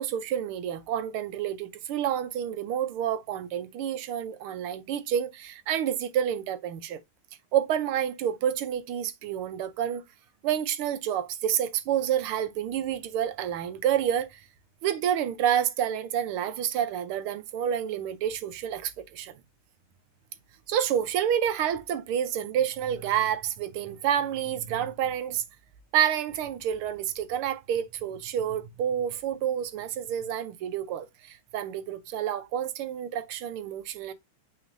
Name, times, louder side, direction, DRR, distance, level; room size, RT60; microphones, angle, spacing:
voice 1, 0.0-7.0 7.5-10.0 10.4-14.4 14.8-19.3 20.7-25.4 25.9-34.1, right 9 dB, 80° right, 1.6 m, -29 dB
8.9 x 4.2 x 2.5 m
omnidirectional pair, 2.4 m